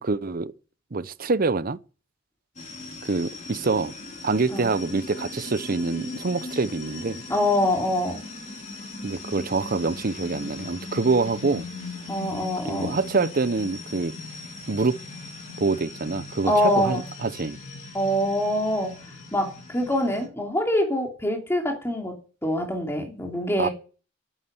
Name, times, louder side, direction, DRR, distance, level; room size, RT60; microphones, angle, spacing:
voice 1, 0.0-0.5 0.9-1.8 3.0-3.9 4.2-7.2 9.0-11.7 12.6-14.1 14.7-14.9 15.6-17.6 23.6-23.7, right 3 dB, 50° right, 0.7 m, -25 dB
sound 1, 2.6-20.3, left 3 dB, 40° left, 4.2 m, -39 dB
voice 2, 7.3-8.2 12.1-13.0 16.5-17.0 17.9-18.9 19.3-22.1 22.4-23.7, left 1 dB, 15° left, 3.0 m, -24 dB
11.5 x 9.1 x 9.7 m
head